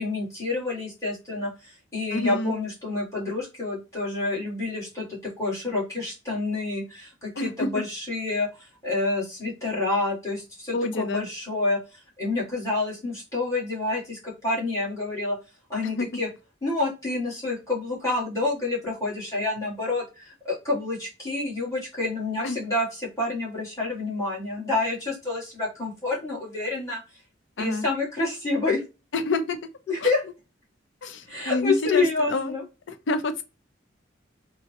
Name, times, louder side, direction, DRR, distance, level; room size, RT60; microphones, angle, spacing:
voice 1, 0.0-8.5 8.8-15.4 15.7-16.3 16.6-27.0 27.6-28.8 29.9-30.2 31.3-32.6, left 3 dB, 20° left, 1.8 m, -28 dB
voice 2, 2.1-2.6 7.4-7.7 10.7-11.3 15.8-16.2 22.4-22.6 27.6-27.8 29.1-29.6 30.0-30.1 31.0-32.5 32.9-33.4, left 2 dB, 80° left, 0.5 m, -28 dB
3.9 x 2.0 x 2.9 m
head